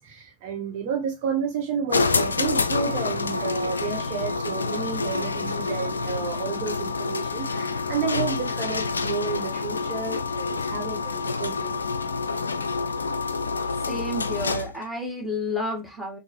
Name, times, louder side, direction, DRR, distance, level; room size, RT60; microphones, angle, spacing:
voice 1, 0.0-11.8, right 6 dB, 45° right, 1.2 m, -31 dB
sound 1, 1.9-14.8, left 4 dB, 75° left, 0.4 m, -27 dB
voice 2, 13.8-16.2, left 1 dB, ahead, 1.7 m, -30 dB
6.5 x 2.6 x 3.1 m
figure-of-eight pair, 90°, 0 cm